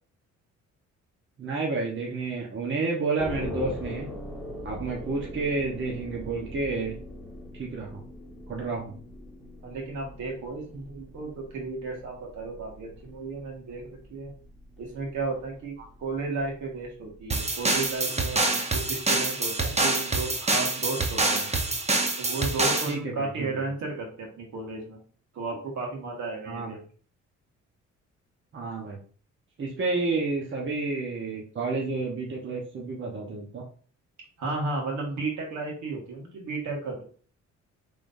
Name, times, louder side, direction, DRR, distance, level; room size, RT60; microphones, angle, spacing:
voice 1, 1.4-4.1 4.6-7.0 7.6-8.0 8.5-9.0 22.9-23.5 26.5-26.8 28.5-29.0 29.6-33.6, right 3 dB, 40° right, -2 dB, 1.2 m, -30 dB
sound 1, 3.2-18.0, left 1 dB, ahead, 1.9 m, -42 dB
voice 2, 9.6-14.3 14.8-15.7 16.0-21.5 22.2-25.0 25.3-26.8 34.4-37.0, right 3 dB, 70° right, -1 dB, 1.8 m, -34 dB
sound 2, 17.3-22.9, right 3 dB, 20° right, 0.9 m, -26 dB
5.3 x 3.6 x 2.7 m, 0.43 s
cardioid pair, 90°, 30 cm